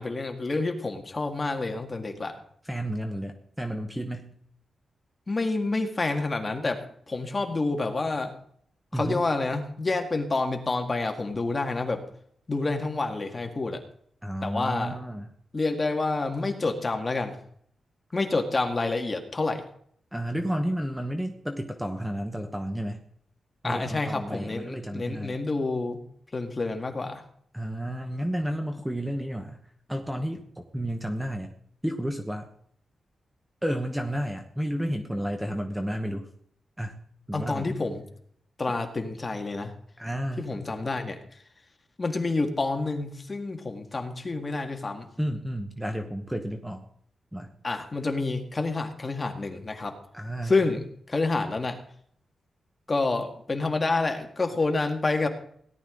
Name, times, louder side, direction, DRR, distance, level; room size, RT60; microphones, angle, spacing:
voice 1, 0.0-2.4 5.3-8.3 8.9-12.0 12.5-13.8 14.4-15.0 15.5-17.3 18.1-19.6 23.6-26.0 26.3-27.2 37.3-38.0 38.6-39.7 40.4-41.2 42.0-45.1 47.6-50.0 50.4-51.8 52.9-55.3, left 3 dB, 25° left, 4 dB, 1.9 m, -28 dB
voice 2, 2.6-4.3 8.9-9.2 14.2-15.3 20.1-23.0 23.6-25.4 27.5-29.6 29.9-30.4 30.7-31.5 31.8-32.5 33.6-36.3 36.8-37.0 37.3-37.7 40.0-40.5 45.2-46.8 47.3-47.5 50.1-50.6, equal, 5° right, 5 dB, 1.1 m, -31 dB
17.5 x 11.5 x 3.9 m, 0.63 s
wide cardioid pair, 140°, 0 cm